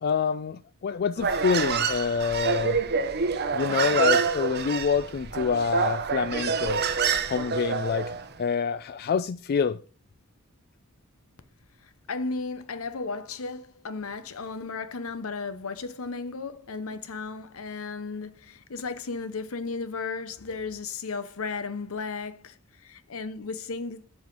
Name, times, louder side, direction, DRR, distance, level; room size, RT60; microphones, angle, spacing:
voice 1, 0.0-2.8 3.5-6.8 7.3-8.1 8.4-9.8, left 6 dB, 45° left, 0.3 m, -26 dB
Human voice, 1.2-8.3, right 5 dB, 45° right, 0.7 m, -27 dB
voice 2, 12.1-24.1, left 4 dB, 70° left, 0.8 m, -35 dB
7.6 x 5.5 x 5.3 m
head